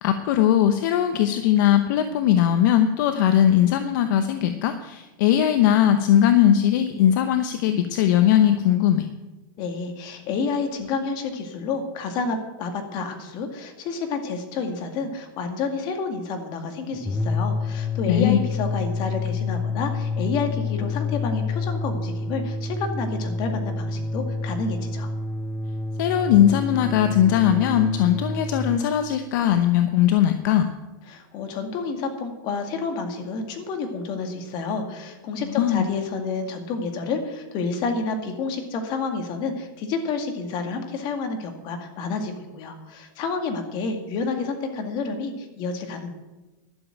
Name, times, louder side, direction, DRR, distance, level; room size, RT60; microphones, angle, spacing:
voice 1, 0.0-9.1 18.1-18.4 26.0-30.7 35.6-35.9, left 10 dB, 65° left, 8 dB, 0.8 m, -19 dB
voice 2, 9.6-25.1 31.1-46.1, left 4 dB, 45° left, 5 dB, 2.1 m, -29 dB
sound 1, 16.9-28.9, left 3 dB, 10° left, 0.6 m, -28 dB
11.5 x 7.2 x 9.0 m, 1.1 s
supercardioid pair, 140°, 11 cm